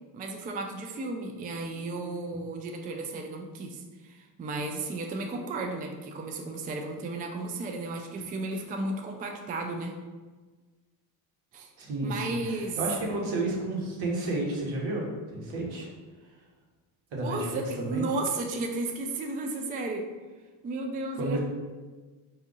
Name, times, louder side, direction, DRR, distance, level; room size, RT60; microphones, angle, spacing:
voice 1, 0.1-10.0 11.5-11.7 12.0-12.8 17.2-20.1 20.6-21.4, right 2 dB, 20° right, 2 dB, 0.3 m, -34 dB
voice 2, 11.8-12.4 12.8-15.0 15.3-15.9 17.1-18.1 21.2-21.4, right 2 dB, 70° right, -2 dB, 1.3 m, -31 dB
3.9 x 2.8 x 3.6 m, 1.4 s
supercardioid pair, 80°, 48 cm